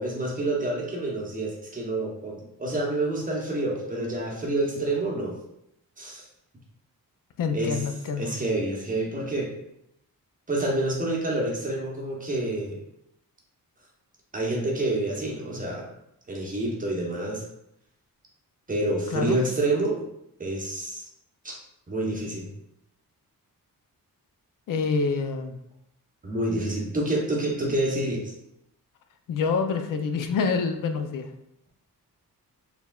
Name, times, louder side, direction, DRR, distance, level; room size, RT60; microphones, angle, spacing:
voice 1, 0.0-5.4 6.0-6.2 7.5-7.8 8.2-9.5 10.5-12.8 14.3-15.9 16.3-17.4 18.7-20.0 20.4-21.0 21.4-21.6 21.9-22.5 26.2-28.3, right 2 dB, 25° right, -2 dB, 0.8 m, -28 dB
voice 2, 7.4-8.3 19.1-19.4 24.7-25.6 29.3-31.3, left 5 dB, 60° left, 6 dB, 0.5 m, -27 dB
4.7 x 3.4 x 2.3 m, 0.79 s
wide cardioid pair, 160°, 36 cm